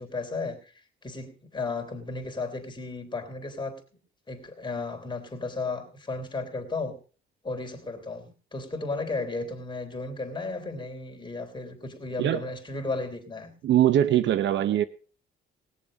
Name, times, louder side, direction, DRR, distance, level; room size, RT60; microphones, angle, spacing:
voice 1, 0.0-3.8 4.3-7.0 7.4-13.5, left 3 dB, 25° left, 3.3 m, -34 dB
voice 2, 13.6-14.8, right 11 dB, 70° right, 0.7 m, -22 dB
20.0 x 7.2 x 5.2 m
cardioid pair, 90°, 20 cm